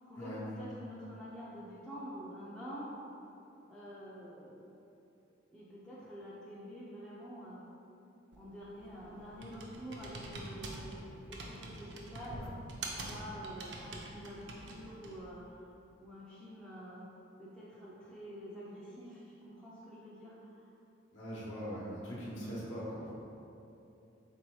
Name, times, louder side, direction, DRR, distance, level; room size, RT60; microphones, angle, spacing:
voice 1, 0.0-2.9 3.7-4.8 5.5-7.6 8.4-10.9 11.3-12.6 13.0-15.6 16.0-17.1 17.4-20.6, equal, 5° left, -9 dB, 0.4 m, -47 dB
Computer keyboard, 8.3-15.3, right 2 dB, 65° right, 0.5 m, -46 dB
voice 2, 21.1-23.1, equal, 70° left, -7 dB, 0.9 m, -41 dB
3.8 x 2.7 x 4.5 m, 2.9 s
head